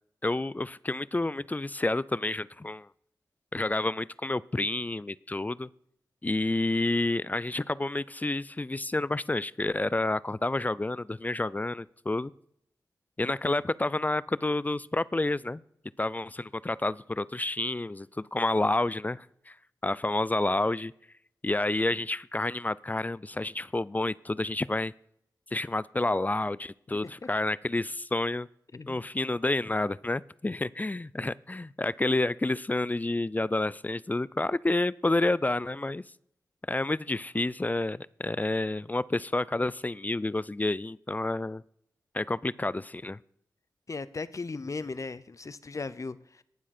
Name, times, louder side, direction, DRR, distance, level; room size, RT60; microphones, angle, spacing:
voice 1, 0.2-2.9 3.5-5.7 6.2-12.3 13.2-15.6 16.0-19.5 19.8-20.9 21.4-24.9 25.5-28.5 28.9-36.0 36.7-41.6 42.1-43.2, left 2 dB, 20° left, 21 dB, 0.4 m, -29 dB
voice 2, 28.7-29.1 43.9-46.4, left 3 dB, 45° left, 16 dB, 0.8 m, -37 dB
18.5 x 7.4 x 4.3 m, 0.70 s
cardioid pair, 50°, 7 cm